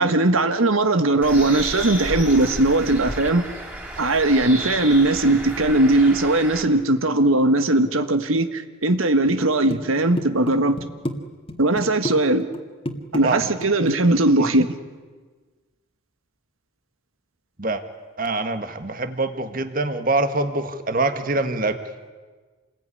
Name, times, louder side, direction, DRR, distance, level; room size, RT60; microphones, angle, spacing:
voice 1, 0.0-3.4 4.0-10.8 11.6-12.5 13.1-14.7, right 2 dB, 85° right, 1.6 m, -19 dB
Bird, 1.2-6.6, right 1 dB, 10° right, 3.4 m, -32 dB
sound 1, 9.3-9.5 9.7-11.2 11.5-12.2 12.4-12.6 12.9-14.2, left 1 dB, 25° left, 2.0 m, -29 dB
voice 2, 18.2-21.8, right 2 dB, 45° right, 1.7 m, -24 dB
28.5 x 21.0 x 9.9 m
head